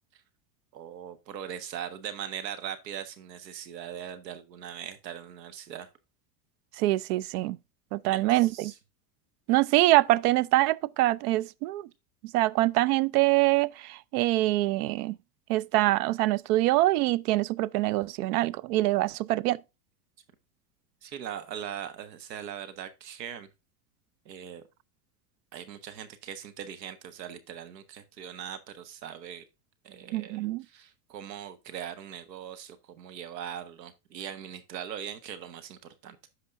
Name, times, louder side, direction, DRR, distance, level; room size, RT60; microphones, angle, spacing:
voice 1, 0.7-5.9 8.1-8.7 21.0-23.5 24.2-24.6 25.5-29.4 29.8-36.2, right 9 dB, 85° right, 1.5 m, -40 dB
voice 2, 6.8-7.6 7.9-8.7 9.5-11.9 12.2-15.2 15.5-19.6 30.1-30.6, right 17 dB, 65° right, 0.6 m, -24 dB
14.0 x 5.0 x 2.5 m
hypercardioid pair, 105°, 49 cm